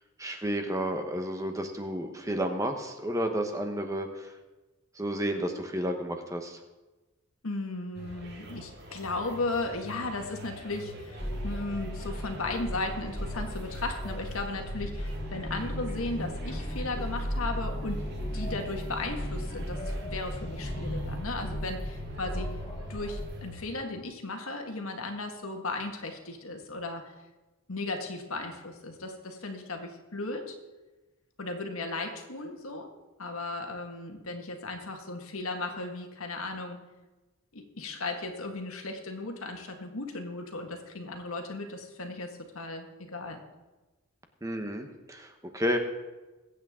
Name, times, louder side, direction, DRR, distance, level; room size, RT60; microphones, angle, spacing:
voice 1, 0.2-4.3 4.9-6.6 44.4-45.8, equal, 15° right, 5 dB, 1.0 m, -31 dB
voice 2, 7.4-18.0 18.3-22.5 22.9-27.1 27.7-30.6 31.4-32.9 33.2-36.8 37.5-43.4, left 2 dB, 85° left, 4 dB, 1.8 m, -36 dB
sound 1, 7.9-23.7, left 1 dB, 50° right, 2.1 m, -46 dB
sound 2, 11.2-23.3, equal, 15° left, 3.0 m, -35 dB
21.5 x 8.6 x 3.7 m, 1.2 s
head